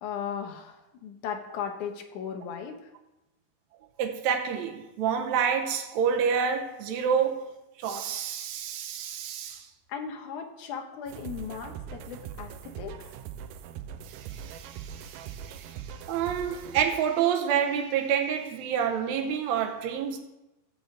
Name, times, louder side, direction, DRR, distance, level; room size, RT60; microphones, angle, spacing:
voice 1, 0.0-2.9 9.9-13.2, left 7 dB, 70° left, 2.7 m, -37 dB
voice 2, 4.0-7.5 7.8-9.7 14.1-20.2, right 7 dB, 70° right, 2.0 m, -28 dB
sound 1, 11.1-16.9, right 8 dB, 85° right, 2.3 m, -41 dB
14.0 x 5.1 x 7.8 m
omnidirectional pair, 3.8 m